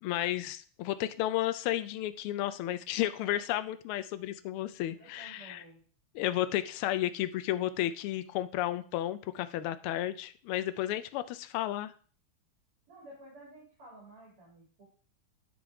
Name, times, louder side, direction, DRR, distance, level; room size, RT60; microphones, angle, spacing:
voice 1, 0.0-5.6 6.1-11.9, left 13 dB, 80° left, 12 dB, 1.5 m, -32 dB
voice 2, 4.6-5.8 12.9-14.9, right 1 dB, 90° right, -5 dB, 3.8 m, -53 dB
9.6 x 3.9 x 4.7 m, 0.43 s
omnidirectional pair, 2.4 m